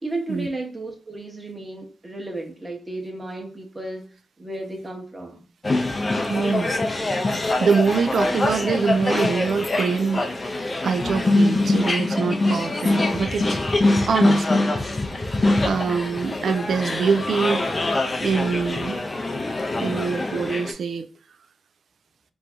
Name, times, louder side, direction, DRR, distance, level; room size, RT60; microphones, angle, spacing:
voice 1, 0.0-4.0 4.4-5.4, right 2 dB, 20° right, 1.0 m, -33 dB
sound 1, 5.6-20.7, left 2 dB, 30° left, 0.5 m, -23 dB
voice 2, 6.3-6.7 7.6-10.5 10.8-13.6 14.1-14.5 15.6-17.6 18.2-19.0 19.7-21.1, right 5 dB, 70° right, 0.3 m, -24 dB
3.0 x 2.6 x 3.5 m
cardioid pair, 80°, 0 cm